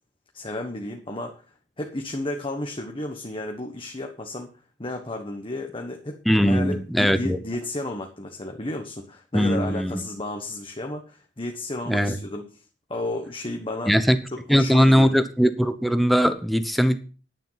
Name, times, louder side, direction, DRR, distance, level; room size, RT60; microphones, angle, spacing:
voice 1, 0.3-1.4 1.8-4.5 4.8-12.4 12.9-14.0 14.5-15.2, left 2 dB, 30° left, 1.3 m, -32 dB
voice 2, 6.3-7.4 9.3-10.0 11.9-12.2 13.9-14.2 14.5-17.0, equal, ahead, 1.0 m, -20 dB
10.0 x 9.2 x 5.8 m
head